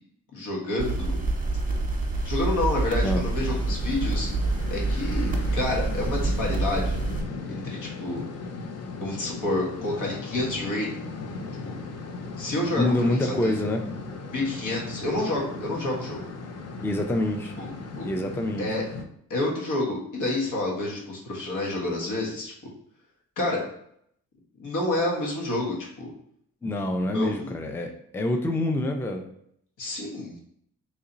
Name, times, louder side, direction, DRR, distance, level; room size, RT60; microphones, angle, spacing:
voice 1, 0.3-1.2 2.2-4.3 4.7-7.0 7.4-8.2 9.0-11.1 11.6-11.8 12.4-13.5 14.3-16.3 17.6-17.7 18.0-18.1 18.6-18.8 19.3-22.7 23.4-23.6 24.6-26.1 27.0-27.5 29.8-30.5, left 2 dB, 75° left, -2 dB, 1.3 m, -29 dB
sound 1, 0.8-7.2, right 3 dB, 25° right, 1.0 m, -27 dB
sound 2, 3.4-19.0, left 4 dB, 55° left, 0.6 m, -37 dB
voice 2, 12.8-13.8 16.8-17.5 18.0-18.8 26.6-29.2, left 1 dB, 5° left, 4 dB, 0.5 m, -26 dB
3.0 x 2.8 x 3.9 m, 0.70 s
cardioid pair, 70°, 31 cm